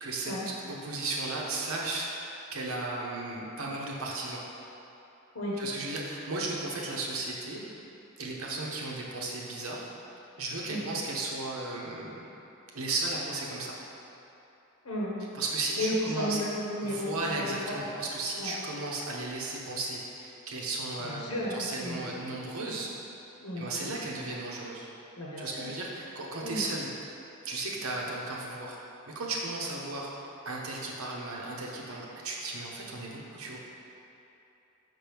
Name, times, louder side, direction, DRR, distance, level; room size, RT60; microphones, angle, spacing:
voice 1, 0.0-2.1 2.5-4.4 5.6-7.6 8.2-9.9 10.4-12.2 12.7-13.7 15.3-16.4 16.8-22.9 23.6-24.9 25.4-26.9 27.4-28.8 29.1-30.1 30.4-33.6, right 2 dB, 80° right, -2 dB, 0.9 m, -35 dB
voice 2, 14.8-15.2 15.8-17.9 18.4-18.5 21.0-22.0 23.4-23.7 25.2-25.7 26.4-26.7, left 1 dB, 80° left, -5 dB, 1.0 m, -33 dB
6.0 x 5.5 x 3.5 m, 3.0 s
head